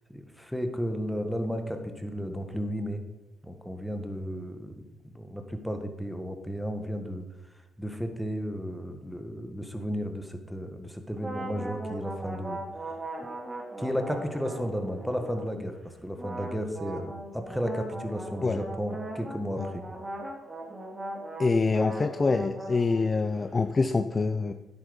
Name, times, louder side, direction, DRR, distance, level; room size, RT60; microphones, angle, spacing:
voice 1, 0.1-3.0 3.4-7.3 7.8-12.6 13.8-15.7 16.0-19.8, equal, ahead, 6 dB, 1.6 m, -33 dB
sound 1, 11.2-15.6 16.2-23.4, right 1 dB, 20° right, 2.4 m, -39 dB
voice 2, 21.4-24.5, left 4 dB, 30° left, 9 dB, 0.6 m, -25 dB
10.5 x 8.4 x 5.3 m, 1.0 s
cardioid pair, 90°, 0 cm